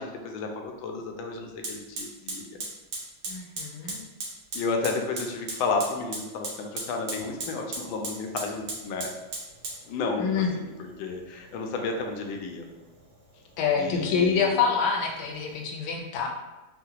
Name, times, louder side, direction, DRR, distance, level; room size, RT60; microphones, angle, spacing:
voice 1, 0.0-2.6 4.5-9.1 9.8-12.7 13.7-14.6, left 4 dB, 85° left, 3 dB, 1.4 m, -32 dB
Fire, 1.6-15.6, right 2 dB, 70° right, 1.7 m, -40 dB
voice 2, 3.3-4.0 10.2-10.5 13.6-16.3, left 6 dB, 70° left, 0 dB, 1.0 m, -26 dB
4.7 x 2.1 x 2.8 m, 1.1 s
omnidirectional pair, 2.1 m